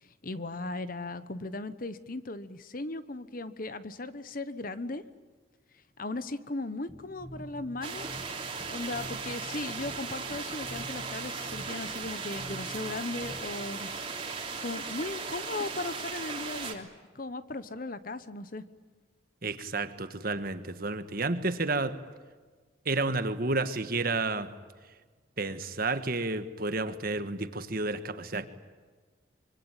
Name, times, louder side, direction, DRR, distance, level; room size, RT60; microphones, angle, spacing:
voice 1, 0.0-5.0 6.0-8.2 8.7-13.9 14.6-16.9 17.1-18.6, left 2 dB, 45° left, 13 dB, 1.1 m, -37 dB
sound 1, 6.9-13.7, equal, 5° right, 2.9 m, -47 dB
sound 2, 7.8-16.7, right 5 dB, 25° right, 3.1 m, -37 dB
voice 2, 19.4-22.0 22.8-24.5 25.4-28.5, right 3 dB, 50° right, 10 dB, 1.5 m, -31 dB
25.5 x 24.5 x 9.1 m, 1.4 s
head